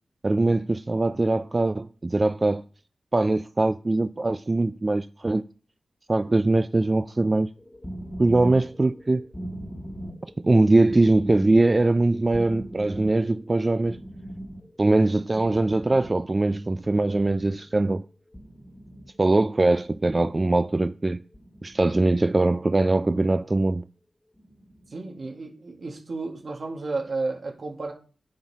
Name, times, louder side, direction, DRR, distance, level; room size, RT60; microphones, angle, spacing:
voice 1, 0.2-2.6 3.1-5.5 6.1-7.5 8.2-9.3 10.4-14.0 14.8-18.0 19.2-21.2 21.6-23.9, right 2 dB, 35° right, 0.3 m, -22 dB
sound 1, 7.6-16.4 16.6-17.7 18.3-19.1 19.8-20.6 21.3-22.1 22.8-23.6 24.3-24.9, equal, 15° left, 1.5 m, -41 dB
voice 2, 24.9-27.9, right 3 dB, 60° right, 1.8 m, -32 dB
9.5 x 3.9 x 4.1 m
cardioid pair, 45°, 0 cm